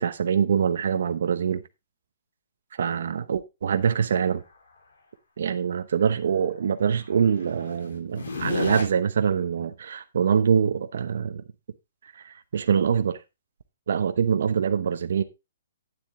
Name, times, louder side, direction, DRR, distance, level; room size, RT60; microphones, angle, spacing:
voice 1, 0.0-1.6 2.7-4.4 5.4-11.4 12.1-13.2 13.9-15.2, right 7 dB, 65° right, 0.9 m, -24 dB
sound 1, 7.4-8.8, left 4 dB, 75° left, 3.7 m, -30 dB
9.7 x 7.4 x 3.7 m
hypercardioid pair, 165°, 0 cm